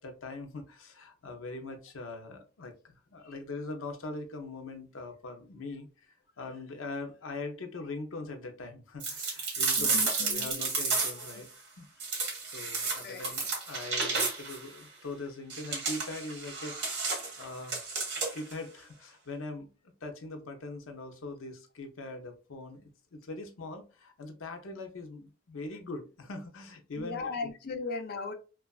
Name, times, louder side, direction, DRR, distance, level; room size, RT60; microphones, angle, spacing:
voice 1, 0.0-11.9 12.2-17.9 18.2-19.7 20.0-27.3, left 2 dB, 90° left, 0.6 m, -42 dB
sound 1, 9.0-11.4 12.0-14.6 15.5-18.5, right 4 dB, 55° right, 1.0 m, -32 dB
voice 2, 9.8-10.6 10.9-11.3 13.0-13.4 27.0-28.3, left 4 dB, 50° left, 0.4 m, -38 dB
3.0 x 2.4 x 2.3 m
head